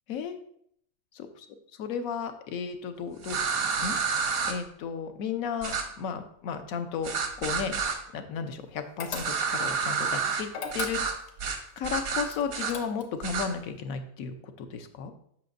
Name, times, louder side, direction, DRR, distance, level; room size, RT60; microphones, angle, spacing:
voice 1, 1.1-1.4 1.8-3.4 3.8-4.0 4.5-7.1 7.4-7.8 8.1-11.0 11.8-15.1, left 6 dB, 85° left, 8 dB, 1.1 m, -34 dB
sound 1, 3.2-4.5 5.6-5.8 7.0-8.0 9.1-10.4 10.7-11.1 11.4-11.6 11.8-12.7 13.2-13.5, right 6 dB, 85° right, 1.3 m, -29 dB
sound 2, 9.0-9.7 10.5-11.4 12.3-13.3, left 5 dB, 60° left, 1.0 m, -38 dB
7.5 x 5.8 x 2.6 m, 0.69 s
omnidirectional pair, 1.5 m